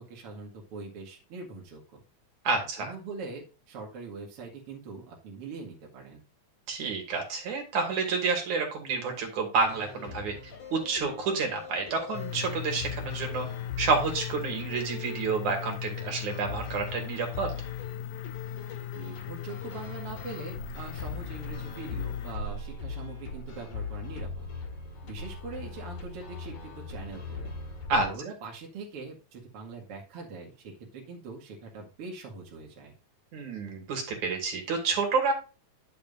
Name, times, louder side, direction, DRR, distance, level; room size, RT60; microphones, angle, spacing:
voice 1, 0.0-2.0 2.8-6.2 18.9-24.5 25.0-27.5 28.0-32.9, right 4 dB, 50° right, -1 dB, 2.7 m, -42 dB
voice 2, 2.5-2.9 6.7-13.5 13.8-17.5 27.9-28.1 33.3-35.3, right 4 dB, 70° right, 2 dB, 3.7 m, -29 dB
sound 1, 9.6-28.1, left 4 dB, 60° left, 3.1 m, -41 dB
sound 2, 12.1-22.4, left 10 dB, 75° left, 1.7 m, -38 dB
10.5 x 6.9 x 2.6 m, 0.33 s
omnidirectional pair, 3.5 m